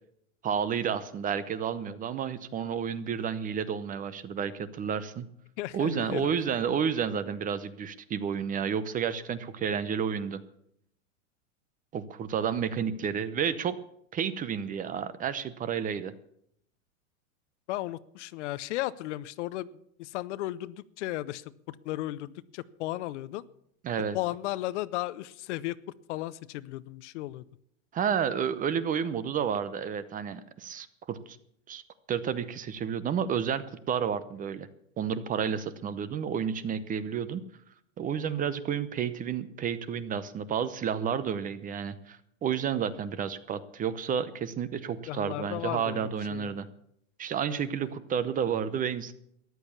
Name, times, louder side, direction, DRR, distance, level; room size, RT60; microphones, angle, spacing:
voice 1, 0.4-5.3 5.7-10.4 11.9-13.8 14.1-16.1 23.8-24.2 27.9-31.4 31.7-31.8 32.1-34.7 35.0-37.4 38.0-46.7 47.2-49.1, right 7 dB, 20° right, 15 dB, 0.7 m, -31 dB
voice 2, 5.6-6.3 17.7-19.7 20.0-23.5 24.1-25.8 26.1-27.4 38.3-38.5 45.1-46.6 47.5-47.9, left 16 dB, 60° left, 17 dB, 0.8 m, -35 dB
14.0 x 10.5 x 7.1 m, 0.71 s
supercardioid pair, 135°, 39 cm